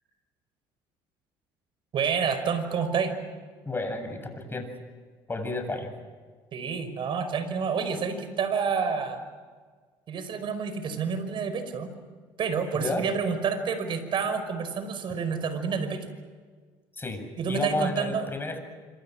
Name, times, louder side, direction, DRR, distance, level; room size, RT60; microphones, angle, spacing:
voice 1, 1.9-3.1 6.5-9.2 10.1-11.9 12.4-16.1 17.4-18.3, right 6 dB, 50° right, 10 dB, 5.3 m, -28 dB
voice 2, 3.6-4.7 5.3-5.9 12.7-13.1 17.0-18.6, left 2 dB, 20° left, 6 dB, 7.6 m, -32 dB
27.0 x 27.0 x 6.3 m, 1.5 s
supercardioid pair, 75°, 11 cm